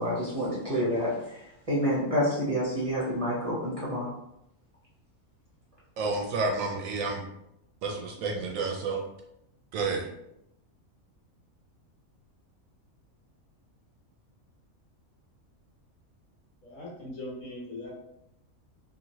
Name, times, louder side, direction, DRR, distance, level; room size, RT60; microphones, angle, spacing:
voice 1, 0.0-1.4 1.7-4.1, equal, 30° right, -8 dB, 0.7 m, -28 dB
voice 2, 6.0-7.2 7.8-9.0 9.7-10.1, right 3 dB, 75° right, 1 dB, 0.9 m, -30 dB
voice 3, 16.6-17.9, left 1 dB, 65° left, -5 dB, 1.5 m, -40 dB
3.0 x 2.5 x 2.7 m, 0.81 s
omnidirectional pair, 1.5 m